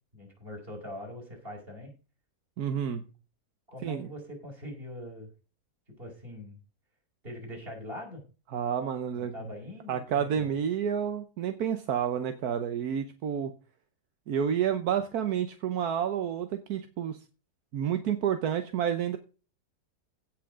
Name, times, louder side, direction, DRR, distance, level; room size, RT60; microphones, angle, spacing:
voice 1, 0.1-1.9 3.7-5.3 6.0-6.6 7.2-8.2 9.1-10.5, left 1 dB, 35° right, 0 dB, 5.2 m, -42 dB
voice 2, 2.6-3.1 3.8-4.1 8.5-9.3 9.9-13.5 14.3-17.2 17.7-19.2, right 8 dB, 75° right, 8 dB, 1.4 m, -29 dB
17.0 x 6.1 x 3.7 m, 0.34 s
omnidirectional pair, 1.6 m